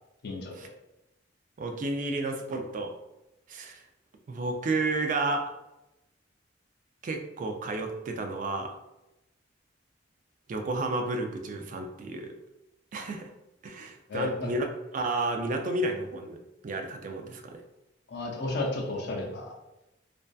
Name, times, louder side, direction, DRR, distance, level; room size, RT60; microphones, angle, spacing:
voice 1, 0.2-0.7 14.1-14.5 18.1-19.5, left 2 dB, 60° left, -1 dB, 0.4 m, -33 dB
voice 2, 1.6-2.9 3.5-3.8 4.3-5.5 7.0-8.7 10.5-12.3 12.9-13.3 13.6-14.7 14.9-17.6, right 2 dB, 45° right, 5 dB, 0.3 m, -31 dB
2.5 x 2.2 x 2.3 m, 0.95 s
head